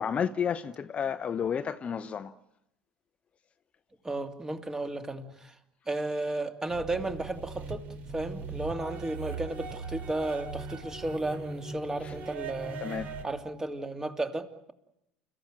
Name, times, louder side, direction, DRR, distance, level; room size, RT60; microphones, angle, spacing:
voice 1, 0.0-2.3 12.0-12.1 12.8-13.1, left 7 dB, 35° left, 0.9 m, -31 dB
voice 2, 4.0-5.5 5.9-12.8 13.2-14.7, right 2 dB, 15° right, 2.7 m, -34 dB
sound 1, 6.7-13.2, right 4 dB, 50° right, 3.0 m, -40 dB
29.5 x 15.0 x 9.2 m
hypercardioid pair, 75°, 4 cm